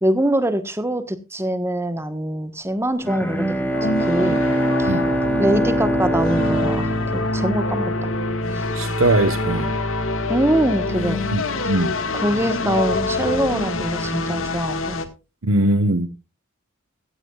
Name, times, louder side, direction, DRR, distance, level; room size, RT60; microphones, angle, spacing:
voice 1, 0.0-3.5 3.8-4.4 4.8-4.9 5.4-8.1 8.5-8.6 10.3-11.2 12.1-15.0, right 1 dB, 10° right, 1.3 m, -23 dB
Bowed string instrument, 3.0-8.0, equal, 10° left, 2.2 m, -23 dB
sound 1, 3.7-15.1, left 2 dB, 75° left, 1.8 m, -25 dB
voice 2, 8.7-9.8 11.3-12.0 15.4-16.1, right 1 dB, 80° right, 1.1 m, -21 dB
15.5 x 15.0 x 2.4 m
head